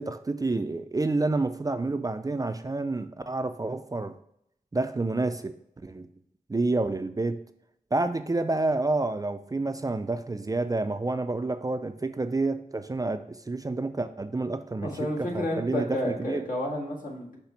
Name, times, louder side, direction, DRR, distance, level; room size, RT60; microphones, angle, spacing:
voice 1, 0.0-4.1 4.7-5.5 5.8-6.1 6.5-7.4 7.9-16.5, right 2 dB, 25° right, 9 dB, 0.3 m, -29 dB
voice 2, 14.8-17.4, left 1 dB, 65° left, -3 dB, 1.8 m, -31 dB
5.7 x 3.4 x 5.7 m, 0.72 s
wide cardioid pair, 100°, 15 cm